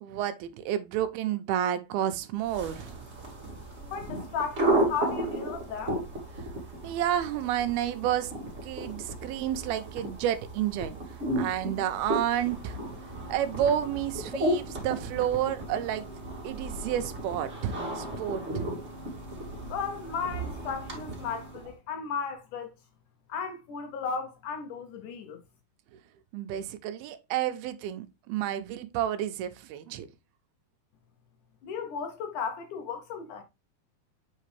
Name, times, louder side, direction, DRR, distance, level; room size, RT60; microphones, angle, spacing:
voice 1, 0.0-3.0 6.8-8.3 8.6-11.0 11.4-12.8 13.3-16.2 16.4-18.7 26.3-30.1, right 11 dB, 90° right, 2.6 m, -30 dB
sound 1, 2.4-21.7, right 1 dB, 25° right, 1.7 m, -34 dB
voice 2, 3.8-6.1 19.7-22.7 23.3-25.4 31.6-33.4, left 6 dB, 70° left, 2.0 m, -35 dB
7.5 x 5.1 x 3.3 m
omnidirectional pair, 4.4 m